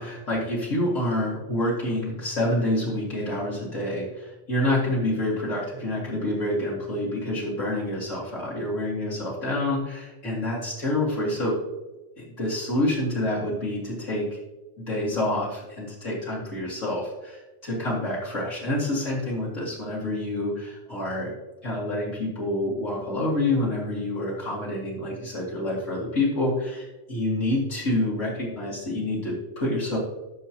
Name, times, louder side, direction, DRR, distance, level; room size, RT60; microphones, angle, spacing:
voice 1, 0.0-11.6 12.2-14.4 14.8-21.3 21.6-30.0, left 1 dB, 65° left, -6 dB, 0.7 m, -27 dB
14.5 x 6.3 x 2.9 m, 1.1 s
omnidirectional pair, 4.5 m